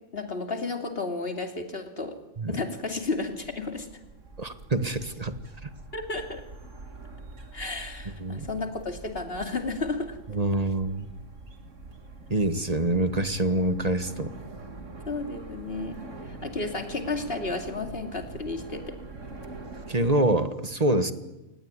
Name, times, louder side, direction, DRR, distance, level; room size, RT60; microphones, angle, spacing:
voice 1, 0.1-2.2 2.5-3.9 5.9-6.4 7.5-10.2 15.1-16.0 16.2-19.0, left 3 dB, 45° left, 5 dB, 3.0 m, -32 dB
sound 1, 2.9-20.1, right 3 dB, 60° right, 2.7 m, -44 dB
voice 2, 4.4-5.3 5.6-5.7 8.2-8.5 10.3-11.1 12.3-14.3 19.9-21.1, right 1 dB, 30° right, 10 dB, 1.5 m, -25 dB
28.0 x 20.0 x 9.7 m, 1.1 s
omnidirectional pair, 1.5 m